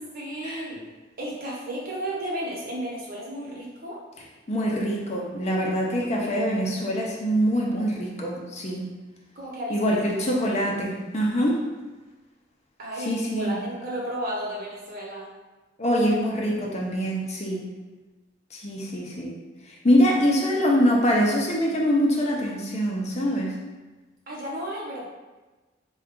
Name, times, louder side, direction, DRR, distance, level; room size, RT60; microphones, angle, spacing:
voice 1, 0.1-0.8 1.2-4.0 9.3-9.8 12.8-15.3 24.3-25.1, right 1 dB, 50° right, -4 dB, 0.9 m, -33 dB
voice 2, 4.5-8.9 9.7-11.7 13.1-13.6 15.8-17.7 18.5-19.4 19.8-23.5, equal, 35° left, -2 dB, 0.5 m, -24 dB
3.7 x 2.3 x 3.6 m, 1.2 s
head